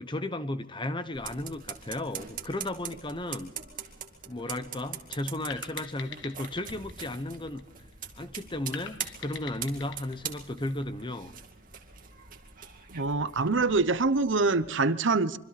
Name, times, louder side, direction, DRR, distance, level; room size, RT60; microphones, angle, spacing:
voice 1, 0.0-3.5 4.3-7.6 8.2-11.3, left 1 dB, 25° left, 1.0 m, -34 dB
sound 1, 1.1-14.7, right 8 dB, 45° right, 2.3 m, -43 dB
sound 2, 5.5-8.0 8.7-11.3, left 6 dB, 65° left, 1.6 m, -44 dB
voice 2, 12.9-15.4, right 3 dB, 65° right, 0.9 m, -25 dB
25.5 x 24.5 x 4.2 m
head